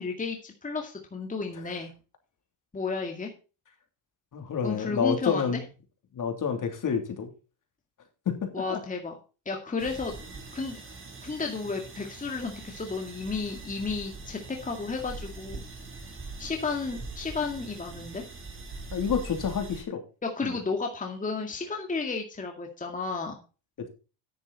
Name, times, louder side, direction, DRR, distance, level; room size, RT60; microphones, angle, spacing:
voice 1, 0.0-1.9 2.7-3.3 4.6-5.6 8.5-9.1 9.5-10.2 10.5-10.8 11.2-15.6 16.4-18.2 20.2-23.4, left 4 dB, 15° left, 2 dB, 2.1 m, -32 dB
voice 2, 4.3-5.6 6.1-7.3 8.2-8.8 18.9-20.0 20.4-20.6, left 7 dB, 45° left, 5 dB, 3.0 m, -29 dB
sound 1, 9.8-19.8, right 3 dB, 25° right, 3.2 m, -42 dB
10.0 x 9.3 x 4.1 m, 0.33 s
cardioid pair, 115°, 45 cm